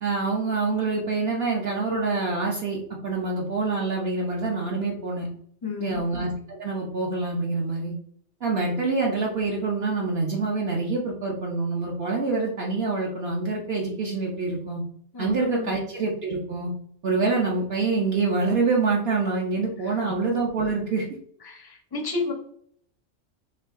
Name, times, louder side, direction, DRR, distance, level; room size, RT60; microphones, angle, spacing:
voice 1, 0.0-5.3 5.8-7.9 8.4-14.8 15.2-16.7 17.0-21.0, right 3 dB, 60° right, -2 dB, 0.9 m, -26 dB
voice 2, 5.6-6.0 15.1-15.8 19.8-19.9 21.4-22.3, left 3 dB, 30° left, 2 dB, 0.5 m, -31 dB
4.7 x 2.8 x 2.5 m, 0.64 s
omnidirectional pair, 1.2 m